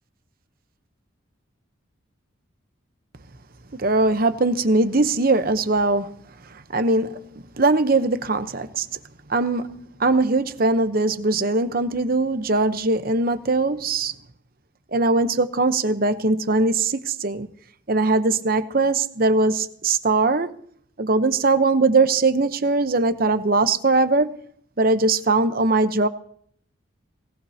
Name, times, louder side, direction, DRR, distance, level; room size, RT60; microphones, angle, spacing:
voice 1, 3.7-6.1 6.5-8.9 9.3-14.1 14.9-17.5 17.9-20.6 21.0-24.4 24.8-26.1, right 3 dB, 50° right, 0.9 m, -21 dB
21.0 x 18.0 x 2.8 m
head